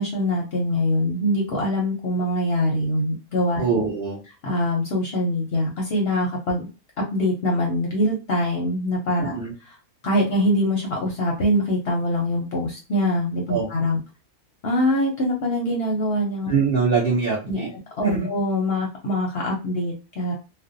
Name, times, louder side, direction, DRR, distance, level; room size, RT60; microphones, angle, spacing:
voice 1, 0.0-3.6 4.4-6.7 7.1-9.4 9.6-9.8 10.0-14.0 14.6-16.5 17.5-20.3, left 1 dB, 55° left, -1 dB, 0.7 m, -23 dB
voice 2, 3.6-4.2 9.2-9.5 13.5-13.7 16.5-17.7 18.0-18.3, right 5 dB, 60° right, -3 dB, 0.6 m, -23 dB
2.5 x 2.0 x 2.5 m, 0.30 s
omnidirectional pair, 1.5 m